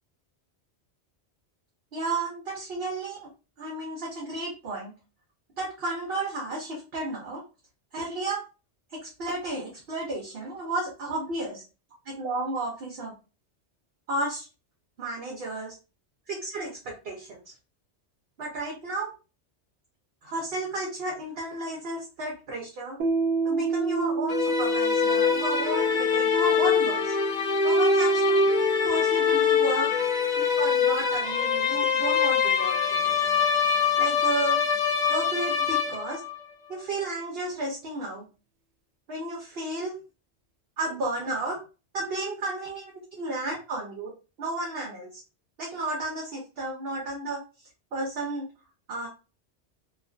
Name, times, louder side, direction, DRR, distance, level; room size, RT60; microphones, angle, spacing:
voice 1, 1.9-3.3 3.6-4.9 5.6-7.4 7.9-8.4 8.9-11.6 12.0-13.1 14.1-14.5 15.0-15.8 16.3-17.4 18.4-19.1 20.2-23.0 23.4-27.1 27.6-28.4 28.8-29.9 30.4-33.4 34.0-34.6 35.1-36.2 36.7-38.3 39.1-40.0 40.8-41.6 41.9-44.1 44.4-45.2 45.6-47.4 47.9-48.5 48.9-49.1, right 2 dB, 65° right, -1 dB, 0.9 m, -33 dB
Piano, 23.0-30.3, right 4 dB, 90° right, 0.9 m, -31 dB
sound 1, 24.3-36.4, left 5 dB, 55° left, 0.4 m, -24 dB
2.4 x 2.4 x 2.3 m, 0.32 s
omnidirectional pair, 1.2 m